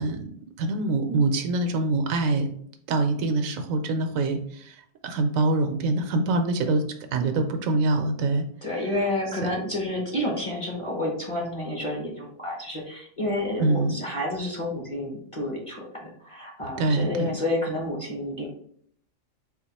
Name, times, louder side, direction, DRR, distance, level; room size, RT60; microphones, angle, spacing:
voice 1, 0.0-2.5 2.9-6.8 7.1-8.4 9.4-9.5 13.6-14.0 16.8-17.4, right 2 dB, 80° right, 6 dB, 1.0 m, -25 dB
voice 2, 8.6-18.5, left 1 dB, 30° left, -2 dB, 0.8 m, -30 dB
4.1 x 2.5 x 4.0 m, 0.64 s
omnidirectional pair, 1.4 m